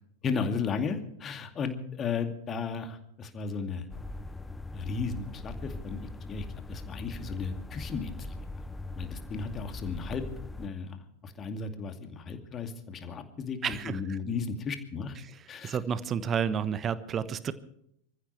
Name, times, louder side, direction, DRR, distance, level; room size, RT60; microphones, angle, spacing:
voice 1, 0.2-3.9 4.7-8.3 8.9-10.2 10.5-15.2 15.5-15.8, left 5 dB, 25° left, 7 dB, 2.4 m, -35 dB
sound 1, 3.9-10.7, left 2 dB, 10° left, 0.7 m, -41 dB
voice 2, 13.6-14.2 15.2-17.5, right 7 dB, 25° right, 15 dB, 1.1 m, -31 dB
26.5 x 15.0 x 3.3 m, 0.73 s
figure-of-eight pair, 90°, 0 cm